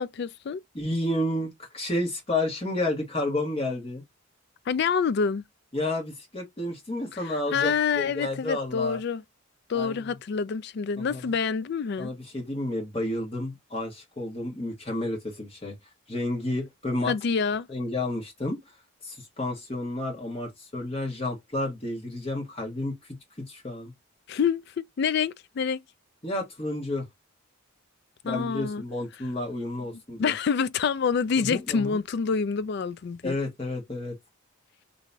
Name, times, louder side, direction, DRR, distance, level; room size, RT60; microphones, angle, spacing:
voice 1, 0.0-0.6 4.7-5.4 7.5-9.2 9.7-12.1 17.1-17.7 24.3-25.8 28.2-28.8 30.2-33.3, left 6 dB, 50° left, 0.3 m, -27 dB
voice 2, 0.7-4.0 5.7-9.0 9.7-10.2 11.0-11.3 12.0-15.8 16.1-17.1 17.7-18.6 19.0-23.0 23.4-23.9 26.2-27.1 28.2-30.3 31.4-32.0 33.2-34.1, left 1 dB, 25° left, 1.4 m, -31 dB
3.0 x 2.7 x 3.3 m
head